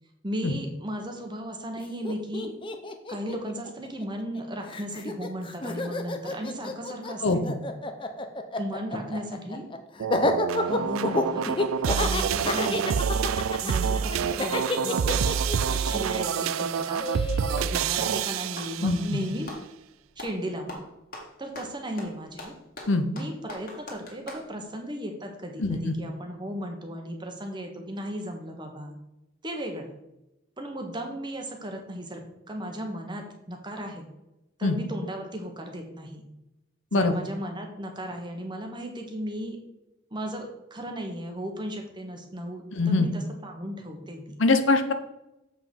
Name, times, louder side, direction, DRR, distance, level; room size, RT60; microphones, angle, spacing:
voice 1, 0.2-2.5 3.1-7.2 8.6-9.7 10.7-11.4 11.9-13.0 13.6-15.4 15.7-17.1 17.6-19.5 20.2-20.8 21.4-22.5 23.1-29.0 29.4-29.9 30.6-32.2 32.5-34.1 34.6-36.2 36.9-39.6 40.1-44.3, equal, 20° right, 3 dB, 1.2 m, -35 dB
Laughter, 1.8-4.4 4.7-17.7, left 2 dB, 25° left, 0.6 m, -30 dB
voice 2, 7.2-7.5 18.8-19.0 22.9-23.1 25.6-25.9 34.6-34.8 36.9-37.2 42.7-43.1 44.4-44.9, left 3 dB, 65° left, 8 dB, 0.8 m, -23 dB
sound 1, 10.0-19.2, right 7 dB, 90° right, 0.4 m, -27 dB
Clapping, 17.0-17.8 18.4-19.7 20.2-20.4 20.7-24.5, left 1 dB, 45° left, 1.8 m, -42 dB
7.4 x 5.3 x 5.2 m, 0.91 s
head